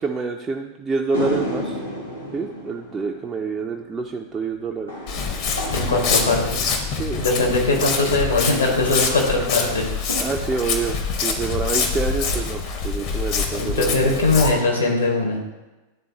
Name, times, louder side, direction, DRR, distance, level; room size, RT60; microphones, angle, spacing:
voice 1, 0.0-1.8 2.3-4.9 7.0-7.3 10.2-14.1, right 4 dB, 20° right, 0 dB, 0.5 m, -27 dB
sound 1, 1.1-7.6, left 1 dB, 90° left, 1.5 m, -33 dB
Walk footsteps, 5.1-14.5, left 5 dB, 45° left, 0.9 m, -25 dB
voice 2, 5.7-6.7 7.2-9.8 13.6-15.4, left 3 dB, 75° left, 0 dB, 1.5 m, -20 dB
11.0 x 3.7 x 2.9 m, 1.1 s
figure-of-eight pair, 90°, 0 cm